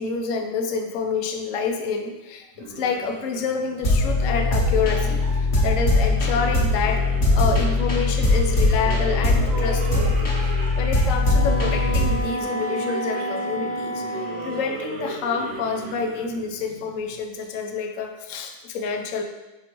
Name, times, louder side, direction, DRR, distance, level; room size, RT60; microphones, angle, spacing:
voice 1, 0.0-2.5 2.8-7.0 7.3-10.3 10.8-19.2, left 5 dB, 75° left, 4 dB, 0.7 m, -28 dB
sound 1, 2.6-17.5, right 3 dB, 75° right, 1.7 m, -36 dB
sound 2, 3.8-12.2, left 2 dB, 40° left, 1.4 m, -21 dB
Wind instrument woodwind instrument, 11.2-14.7, right 1 dB, 60° right, 0.5 m, -30 dB
8.6 x 4.0 x 3.0 m, 1.0 s
omnidirectional pair, 2.1 m